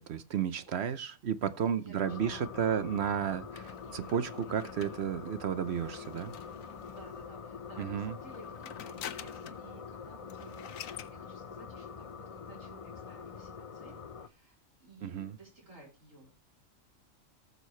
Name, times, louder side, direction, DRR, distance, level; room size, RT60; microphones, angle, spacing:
voice 1, 0.0-6.3 7.8-8.1 15.0-15.4, right 8 dB, 60° right, 0.9 m, -33 dB
voice 2, 1.4-2.9 3.8-4.3 5.8-5.9 6.2-16.4, right 2 dB, 80° right, 4.2 m, -55 dB
sound 1, 2.0-14.3, left 6 dB, 40° left, 0.5 m, -45 dB
sound 2, 3.6-7.2 8.2-9.7 10.0-10.1 10.3-11.1, left 10 dB, 85° left, 1.2 m, -47 dB
18.5 x 6.6 x 3.1 m
omnidirectional pair, 1.4 m